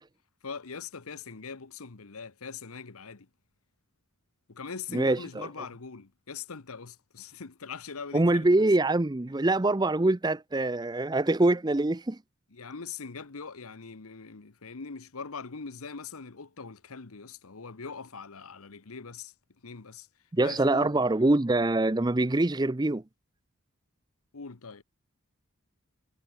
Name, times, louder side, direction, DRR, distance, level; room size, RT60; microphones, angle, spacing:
voice 1, 0.4-3.3 4.5-8.5 12.5-19.3 19.6-20.1 20.4-21.1 24.3-24.8, left 5 dB, 85° left, 1.1 m, -42 dB
voice 2, 4.9-5.5 8.1-12.2 20.3-23.0, right 2 dB, 20° right, 0.5 m, -24 dB
head